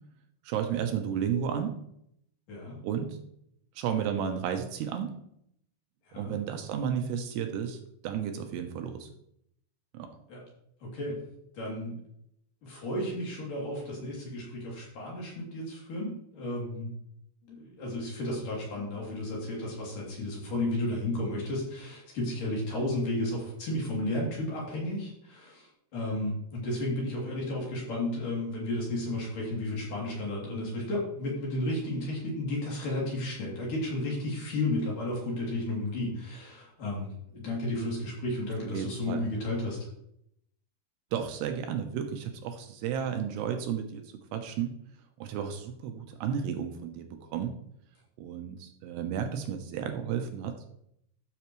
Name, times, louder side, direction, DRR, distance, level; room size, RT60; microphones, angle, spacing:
voice 1, 0.5-1.8 2.8-3.2 3.8-5.1 6.2-9.1 9.9-10.1 38.7-39.2 41.1-44.8 45.2-47.5 48.2-50.6, right 8 dB, 80° right, 6 dB, 2.8 m, -33 dB
voice 2, 2.5-2.8 6.1-6.4 10.3-10.4 10.8-11.2 11.5-12.0 12.6-16.9 17.5-39.9, left 1 dB, 50° left, -4 dB, 4.3 m, -33 dB
13.5 x 7.0 x 3.1 m, 0.73 s
omnidirectional pair, 5.0 m